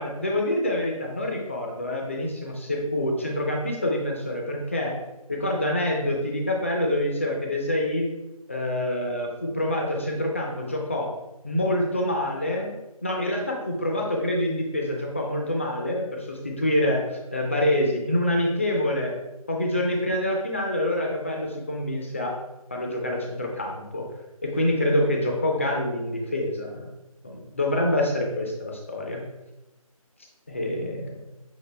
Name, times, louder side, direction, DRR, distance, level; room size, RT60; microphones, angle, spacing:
voice 1, 0.0-5.0 5.3-8.1 8.5-11.1 11.4-12.7 13.0-19.2 19.5-22.4 22.7-24.1 24.4-26.9 27.2-29.2 30.5-31.2, left 1 dB, 20° left, 0 dB, 0.4 m, -26 dB
6.6 x 2.5 x 3.2 m, 1.0 s
figure-of-eight pair, 165°, 19 cm